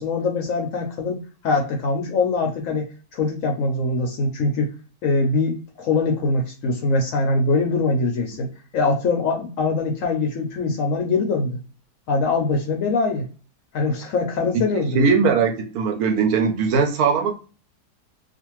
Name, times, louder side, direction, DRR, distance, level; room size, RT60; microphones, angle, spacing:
voice 1, 0.0-2.9 3.1-4.7 5.0-8.5 8.7-11.6 12.1-13.3 13.7-15.0, left 3 dB, 70° left, 2 dB, 0.8 m, -23 dB
voice 2, 14.5-17.3, right 5 dB, 70° right, 4 dB, 1.0 m, -20 dB
2.5 x 2.4 x 2.9 m, 0.36 s
omnidirectional pair, 1.8 m